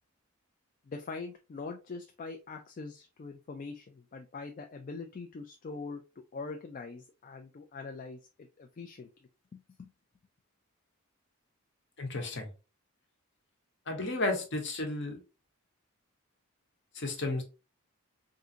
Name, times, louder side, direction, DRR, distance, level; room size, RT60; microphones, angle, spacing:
voice 1, 0.9-9.1 9.5-9.9, left 4 dB, 35° left, 0.3 m, -43 dB
voice 2, 12.0-12.5 13.9-15.2 16.9-17.4, left 2 dB, 55° left, 0.9 m, -33 dB
3.6 x 2.5 x 2.7 m
head